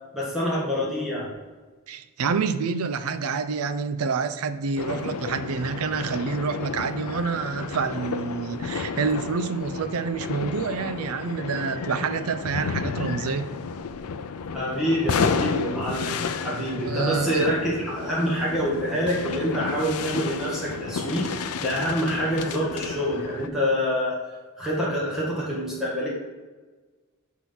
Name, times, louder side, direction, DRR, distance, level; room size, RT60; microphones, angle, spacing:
voice 1, 0.1-1.3 14.5-21.3 21.6-24.2 24.6-26.1, equal, ahead, -6 dB, 1.7 m, -26 dB
voice 2, 1.9-13.5 16.8-17.5, right 5 dB, 75° right, 11 dB, 0.5 m, -28 dB
sound 1, 4.8-23.5, left 5 dB, 85° left, 0.4 m, -32 dB
6.1 x 3.7 x 5.8 m, 1.3 s
head